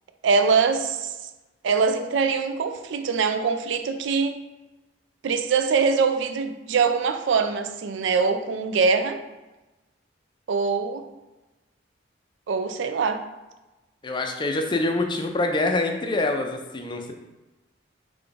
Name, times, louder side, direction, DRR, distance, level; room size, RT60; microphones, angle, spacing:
voice 1, 0.2-1.1 1.6-4.4 5.2-9.2 10.5-11.0 12.5-13.2, right 5 dB, 75° right, 9 dB, 0.4 m, -23 dB
voice 2, 14.0-17.1, left 2 dB, 25° left, 4 dB, 0.4 m, -25 dB
4.0 x 3.3 x 3.4 m, 1.1 s
head